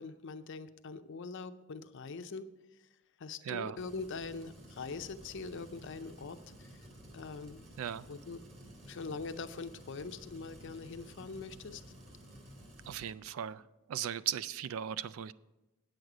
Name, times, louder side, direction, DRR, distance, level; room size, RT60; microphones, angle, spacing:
voice 1, 0.0-2.5 3.2-6.7 7.1-7.6 8.1-8.4 8.9-11.8, left 4 dB, 60° left, 11 dB, 0.5 m, -43 dB
voice 2, 3.4-3.8 7.8-8.1 12.9-15.3, right 9 dB, 70° right, 17 dB, 0.3 m, -37 dB
sound 1, 3.8-13.1, equal, 35° right, 2.9 m, -53 dB
9.0 x 8.0 x 4.9 m, 1.0 s
head